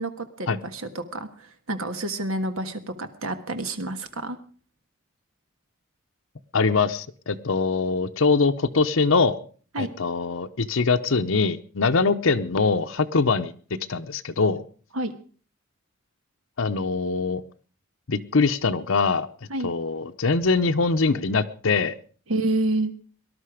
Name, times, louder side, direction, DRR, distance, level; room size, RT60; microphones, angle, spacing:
voice 1, 0.0-4.4 9.7-9.9 14.9-15.1 19.5-19.7 22.3-22.9, right 2 dB, 80° right, 9 dB, 1.6 m, -29 dB
voice 2, 6.5-9.4 9.8-13.5 13.9-14.6 16.6-17.4 18.1-19.3 19.6-21.9, left 4 dB, 70° left, 7 dB, 0.8 m, -23 dB
19.0 x 12.0 x 5.0 m, 0.42 s
head